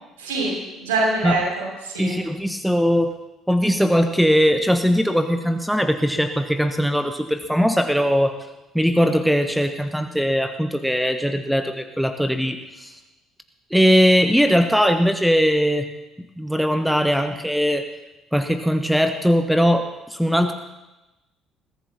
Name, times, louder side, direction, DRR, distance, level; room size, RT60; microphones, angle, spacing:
voice 1, 0.2-2.2, right 2 dB, 70° right, -4 dB, 6.2 m, -25 dB
voice 2, 2.0-3.1 3.5-8.4 8.7-13.0 13.7-15.9 16.4-17.8 18.3-20.5, equal, ahead, 8 dB, 1.0 m, -20 dB
21.5 x 14.0 x 2.9 m, 1.0 s
figure-of-eight pair, 50°, 0 cm